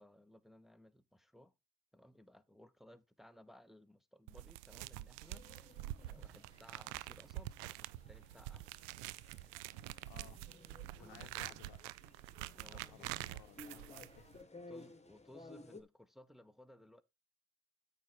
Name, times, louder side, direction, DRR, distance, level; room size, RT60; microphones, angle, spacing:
voice 1, 0.0-1.5 1.9-5.8 6.1-8.7 11.0-11.6 12.5-13.2 14.7-17.0, left 1 dB, ahead, 0.9 m, -61 dB
sound 1, 4.3-14.4, right 16 dB, 85° right, 0.5 m, -47 dB
sound 2, 5.2-15.8, left 2 dB, 15° left, 1.5 m, -58 dB
voice 2, 10.0-10.4 11.0-11.8 12.7-14.4, left 14 dB, 75° left, 0.8 m, -59 dB
8.6 x 5.3 x 4.6 m
supercardioid pair, 60°, 38 cm